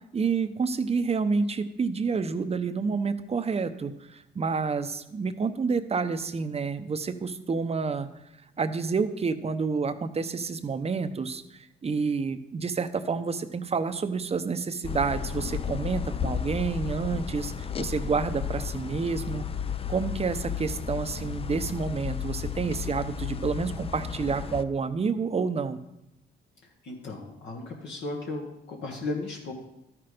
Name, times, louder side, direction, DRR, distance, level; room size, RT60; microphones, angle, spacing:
voice 1, 0.1-8.1 8.6-19.4 19.9-25.8, right 5 dB, 30° right, 10 dB, 0.7 m, -29 dB
sound 1, 14.8-24.6, left 7 dB, 30° left, 0.4 m, -33 dB
voice 2, 26.8-29.5, left 2 dB, 65° left, 0 dB, 1.5 m, -35 dB
12.5 x 6.0 x 5.1 m, 0.87 s
cardioid pair, 90°, 20 cm